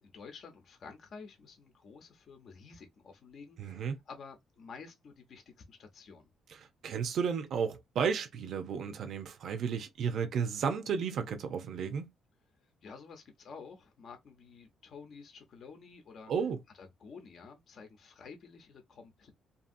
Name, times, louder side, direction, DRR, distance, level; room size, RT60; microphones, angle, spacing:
voice 1, 0.0-6.3 12.8-16.3 16.7-19.3, left 5 dB, 60° left, 0.8 m, -51 dB
voice 2, 3.6-4.0 6.8-12.1 16.3-16.6, right 6 dB, 70° right, 0.6 m, -33 dB
2.7 x 2.7 x 2.6 m
cardioid pair, 90°, 0 cm